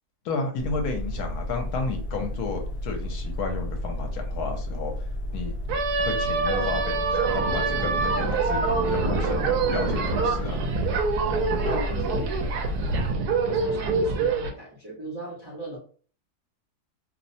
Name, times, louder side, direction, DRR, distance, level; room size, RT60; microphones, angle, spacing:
voice 1, 0.2-4.9 5.3-5.5 6.0-8.6 8.9-9.4 9.7-10.6 11.6-11.8, left 4 dB, 75° left, 4 dB, 1.1 m, -32 dB
sound 1, 0.6-13.1, left 1 dB, 50° left, 0.7 m, -32 dB
sound 2, 5.7-14.5, right 4 dB, 80° right, 1.1 m, -25 dB
voice 2, 11.7-12.2 13.5-15.8, right 1 dB, 35° right, -4 dB, 0.4 m, -38 dB
2.8 x 2.0 x 2.6 m, 0.42 s
omnidirectional pair, 1.7 m